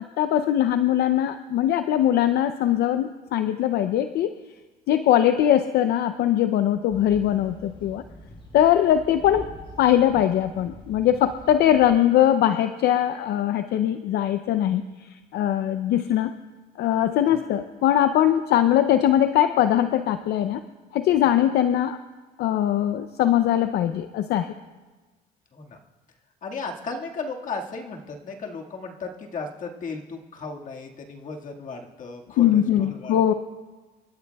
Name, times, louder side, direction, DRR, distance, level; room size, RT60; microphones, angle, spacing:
voice 1, 0.0-4.3 4.9-8.0 8.5-9.5 9.8-16.3 16.8-20.6 20.9-22.0 22.4-24.5 32.4-33.3, left 11 dB, 75° left, 9 dB, 0.6 m, -21 dB
sound 1, 6.9-12.0, left 1 dB, 30° left, 3.7 m, -44 dB
voice 2, 26.4-33.3, left 4 dB, 50° left, 0 dB, 1.9 m, -35 dB
28.0 x 13.5 x 2.3 m, 1.3 s
cardioid pair, 110°, 17 cm